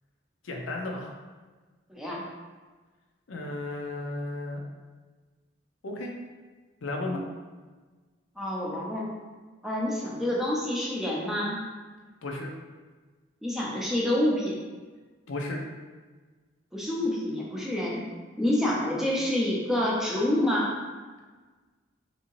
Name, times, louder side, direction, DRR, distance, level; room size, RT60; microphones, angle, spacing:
voice 1, 0.4-1.1 3.3-4.6 5.8-6.1 6.8-7.2 12.2-12.5 15.3-15.6, left 2 dB, 85° left, 0 dB, 0.5 m, -33 dB
voice 2, 1.9-2.2 7.1-7.3 8.4-9.1 9.6-11.6 13.4-14.5 16.7-18.0 18.4-20.7, left 1 dB, ahead, -5 dB, 0.5 m, -27 dB
3.5 x 2.7 x 3.0 m, 1.4 s
head